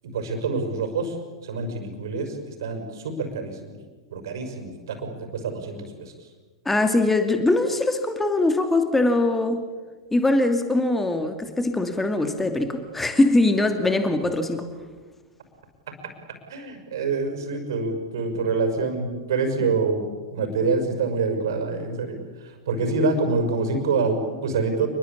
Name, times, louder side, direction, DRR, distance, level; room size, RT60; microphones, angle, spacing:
voice 1, 0.0-3.7 4.1-6.3 15.9-16.0 16.5-20.1 20.3-24.9, right 4 dB, 60° right, 6 dB, 6.0 m, -26 dB
voice 2, 6.7-9.6 10.1-14.7, left 2 dB, 10° left, 7 dB, 2.5 m, -22 dB
28.0 x 22.5 x 8.6 m, 1.3 s
figure-of-eight pair, 95°, 2 cm